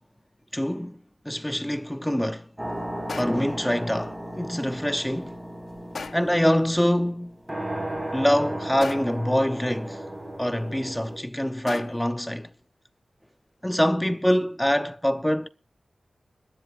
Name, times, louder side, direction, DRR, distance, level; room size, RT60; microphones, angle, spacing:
voice 1, 0.5-1.0 1.2-2.5 3.1-5.4 6.1-7.4 8.1-10.0 10.4-12.5 13.6-15.5, equal, 10° left, 0.8 m, -25 dB
sound 1, 2.6-11.2, right 1 dB, 20° right, 5.1 m, -35 dB
sound 2, 3.1-3.6 5.9-6.5 8.8-9.3 11.7-12.2, left 4 dB, 75° left, 0.8 m, -37 dB
21.5 x 11.5 x 2.5 m
cardioid pair, 55°, 0 cm